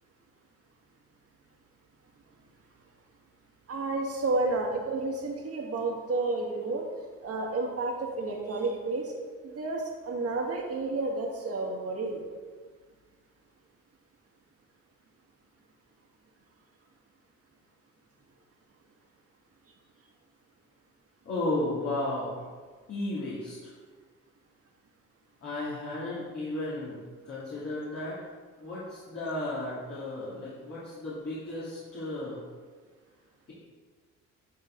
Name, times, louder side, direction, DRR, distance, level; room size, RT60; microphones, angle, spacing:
voice 1, 3.7-6.8 7.2-9.1 9.4-12.3, right 3 dB, 50° right, 0 dB, 1.9 m, -31 dB
voice 2, 21.2-22.5 22.9-23.7 25.4-28.2 28.6-32.4, left 2 dB, 50° left, -10 dB, 2.7 m, -34 dB
12.5 x 4.7 x 3.9 m, 1.5 s
cardioid pair, 90°, 30 cm